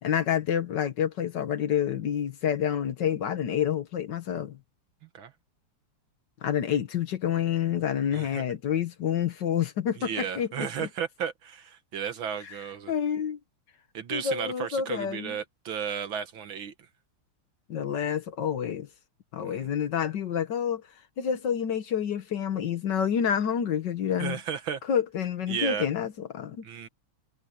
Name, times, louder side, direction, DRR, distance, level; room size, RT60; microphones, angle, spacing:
voice 1, 0.0-4.6 6.4-10.9 12.4-12.5 12.9-13.4 14.1-15.4 17.7-18.9 19.3-20.8 21.2-24.4 24.9-26.6, left 8 dB, 60° left, 1.5 m, -28 dB
voice 2, 8.1-8.4 10.0-12.9 13.9-16.7 19.4-19.7 24.2-24.8 25.5-25.9 26.6-26.9, right 8 dB, 70° right, 2.2 m, -34 dB
omnidirectional pair, 2.3 m